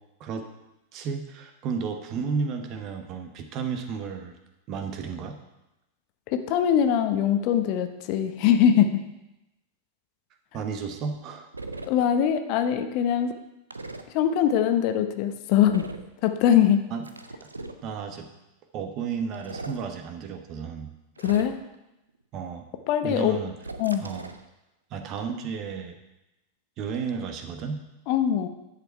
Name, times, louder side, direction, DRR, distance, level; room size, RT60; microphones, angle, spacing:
voice 1, 0.9-4.4 4.7-5.4 10.5-11.5 16.9-17.0 17.8-18.3 18.7-20.9 22.3-22.6 23.0-23.5 24.0-24.3 24.9-26.0 26.8-27.8, right 5 dB, 35° right, 7 dB, 1.1 m, -32 dB
voice 2, 6.3-9.0 11.9-13.3 14.1-15.9 16.2-16.8 21.2-21.6 22.9-23.4 23.8-24.1 28.1-28.5, left 9 dB, 45° left, 8 dB, 0.8 m, -22 dB
sound 1, 11.5-11.9 13.7-14.0 15.6-16.1 17.0-17.8 19.3-19.8 21.2-21.7 23.6-24.4, right 3 dB, 80° right, 0.6 m, -38 dB
10.5 x 7.0 x 4.6 m, 0.94 s
figure-of-eight pair, 90°, 0 cm